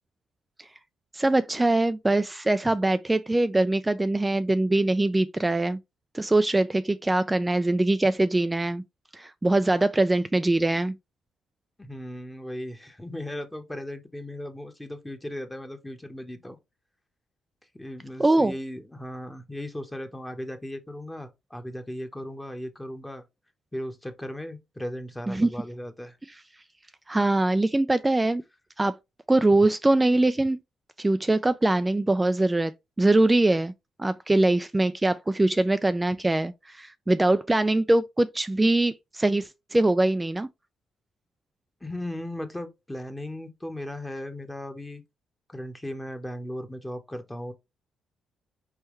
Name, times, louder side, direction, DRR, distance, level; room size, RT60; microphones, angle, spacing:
voice 1, 1.1-5.8 6.1-8.8 9.1-10.9 18.2-18.5 25.3-25.5 27.1-28.4 28.8-28.9 29.3-30.6 31.0-32.7 33.0-33.7 34.0-40.5, right 2 dB, 15° right, 0.3 m, -23 dB
voice 2, 11.8-16.6 17.7-23.2 23.7-26.2 41.8-45.0 45.5-47.5, left 1 dB, 10° left, 1.0 m, -37 dB
4.4 x 3.4 x 3.1 m
cardioid pair, 90°, 0 cm